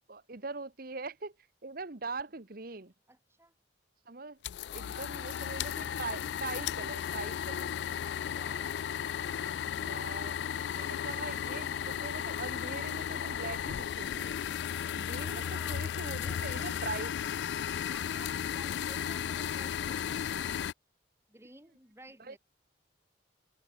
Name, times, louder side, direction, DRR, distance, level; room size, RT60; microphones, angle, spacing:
voice 1, 0.1-2.9 4.1-4.4 4.7-7.7 9.8-10.3 10.8-14.3 14.9-17.2 22.2-22.4, right 3 dB, 50° right, 1.2 m, -42 dB
voice 2, 3.1-3.5 8.0-8.9 15.3-15.8 16.1-16.4 17.9-20.7 21.3-22.4, right 2 dB, 15° right, 6.7 m, -54 dB
sound 1, 4.4-20.7, left 9 dB, 65° left, 0.3 m, -35 dB
head